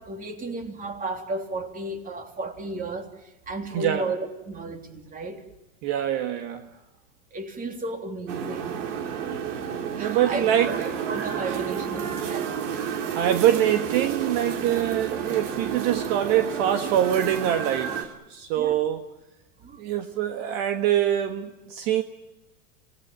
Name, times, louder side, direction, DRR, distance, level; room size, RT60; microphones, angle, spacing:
voice 1, 0.0-5.4 7.3-8.7 10.0-10.8 11.1-12.6 18.6-18.8 19.6-19.8, right 2 dB, 20° right, 6 dB, 3.3 m, -34 dB
voice 2, 3.7-4.1 5.8-6.7 10.0-11.0 11.4-11.6 12.9-19.0 19.8-22.0, right 11 dB, 50° right, 8 dB, 1.6 m, -24 dB
sound 1, 8.3-18.0, right 8 dB, 65° right, 3.3 m, -30 dB
26.0 x 19.0 x 9.3 m, 1.0 s
supercardioid pair, 130°, 39 cm